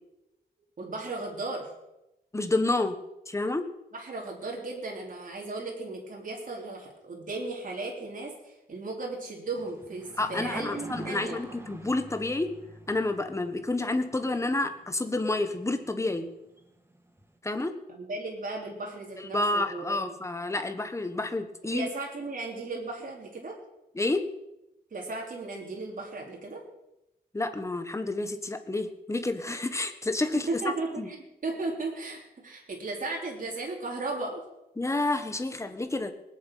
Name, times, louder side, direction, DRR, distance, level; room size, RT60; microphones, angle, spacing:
voice 1, 0.8-1.7 3.9-11.4 17.9-20.2 21.7-23.6 24.9-26.6 30.5-34.4, right 3 dB, 50° right, -1 dB, 3.4 m, -36 dB
voice 2, 2.3-3.0 3.3-3.7 10.2-12.5 12.9-16.3 17.4-17.7 19.2-21.9 23.9-24.3 27.3-30.5 31.0-31.1 34.8-36.1, left 2 dB, 15° left, 8 dB, 1.3 m, -29 dB
sound 1, 9.5-17.4, right 2 dB, 15° right, 1.5 m, -47 dB
19.0 x 7.6 x 9.2 m, 0.90 s
wide cardioid pair, 175°, 17 cm